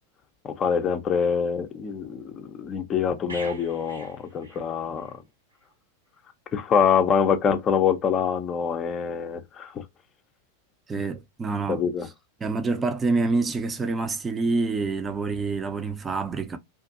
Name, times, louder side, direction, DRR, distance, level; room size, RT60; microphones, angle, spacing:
voice 1, 0.4-5.1 6.5-9.7 11.7-12.1, left 7 dB, 25° left, 0.6 m, -25 dB
sound 1, 3.3-5.2 5.5-5.7, right 4 dB, 80° right, 0.9 m, -42 dB
voice 2, 10.9-11.8 12.4-16.6, right 3 dB, 15° right, 0.5 m, -27 dB
2.5 x 2.5 x 2.4 m
figure-of-eight pair, 90°, 0 cm